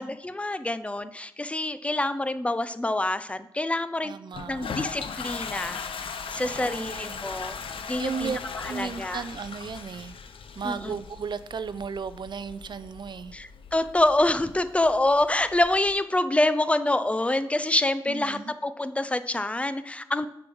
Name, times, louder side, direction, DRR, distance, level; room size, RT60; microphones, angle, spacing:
voice 1, 0.0-4.1 4.5-5.8 6.3-7.6 7.9-8.3 8.6-9.2 10.6-11.0 13.3-20.3, left 1 dB, 15° left, 13 dB, 0.4 m, -26 dB
voice 2, 4.0-4.7 6.4-7.2 8.0-8.4 8.7-10.1 10.5-13.3 18.1-18.5, right 6 dB, 55° right, 14 dB, 0.4 m, -35 dB
Toilet flush, 4.3-15.9, left 6 dB, 80° left, 0.6 m, -39 dB
6.7 x 4.7 x 5.4 m, 0.80 s
wide cardioid pair, 90°, 9 cm